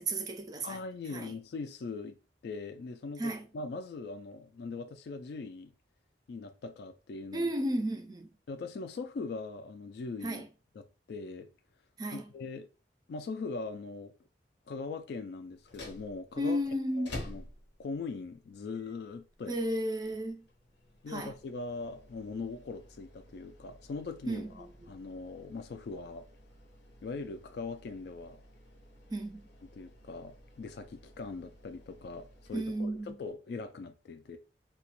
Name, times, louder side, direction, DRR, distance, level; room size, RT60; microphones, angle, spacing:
voice 1, 0.0-0.8 1.1-1.3 3.2-3.5 7.3-8.3 10.2-10.5 12.0-12.3 16.4-17.2 19.5-20.4 21.1-21.3 24.3-24.9 29.1-29.4 32.5-33.1, right 1 dB, 20° right, 0.3 m, -33 dB
voice 2, 0.6-2.2 2.4-5.7 6.3-7.5 8.5-10.4 10.7-11.5 12.1-12.7 13.1-14.1 14.7-16.6 17.0-17.4 17.8-19.6 21.0-26.3 27.0-28.4 29.7-34.4, left 4 dB, 65° left, 0.3 m, -41 dB
sound 1, 15.5-33.3, left 1 dB, 80° left, 0.8 m, -52 dB
2.8 x 2.2 x 2.9 m
head